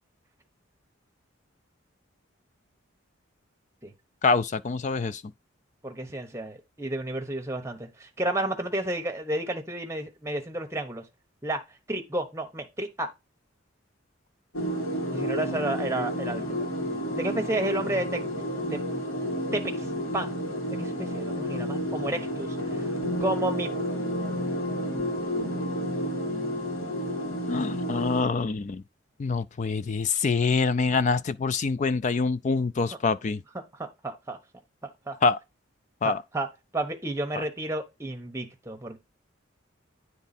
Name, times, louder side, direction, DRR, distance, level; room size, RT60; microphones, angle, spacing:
voice 1, 4.2-5.2 27.5-28.8 29.2-33.4 35.2-35.4 36.0-36.2, left 4 dB, 35° left, 0.3 m, -25 dB
voice 2, 5.8-11.0 11.4-11.6 11.9-13.1 15.1-16.7 17.1-18.2 18.7-18.8 19.5-19.9 20.1-20.4 20.7-22.9 23.2-23.7 33.8-34.4 34.8-35.2 36.0-39.0, right 1 dB, 15° right, 0.9 m, -31 dB
sound 1, 14.5-28.2, equal, 75° left, 2.4 m, -31 dB
9.2 x 3.5 x 4.1 m
head